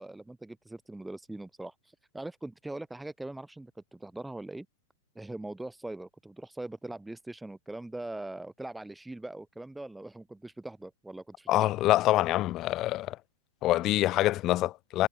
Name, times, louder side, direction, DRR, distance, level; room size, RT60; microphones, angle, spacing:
voice 1, 0.0-4.7 5.1-11.7, right 2 dB, 5° right, 3.0 m, -41 dB
voice 2, 11.5-13.2 13.6-15.1, left 15 dB, 25° left, 2.6 m, -25 dB
hypercardioid pair, 160°, 0 cm